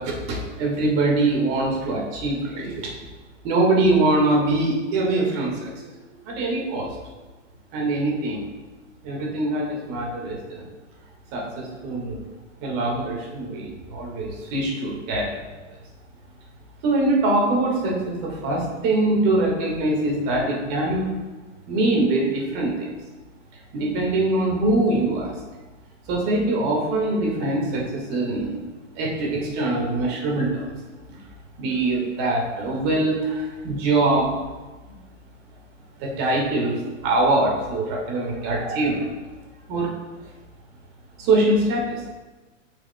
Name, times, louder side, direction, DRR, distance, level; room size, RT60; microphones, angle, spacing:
voice 1, 0.0-2.9 3.4-5.8 6.2-6.9 7.7-8.4 9.0-10.6 11.3-12.2 12.6-15.4 16.8-21.1 21.7-22.9 23.7-25.3 26.1-28.6 28.9-30.7 31.6-34.4 36.0-36.7 37.0-39.1 39.7-39.9 41.2-42.0, right 2 dB, 40° right, -1 dB, 1.7 m, -23 dB
8.6 x 5.0 x 2.2 m, 1.2 s
hypercardioid pair, 120°, 38 cm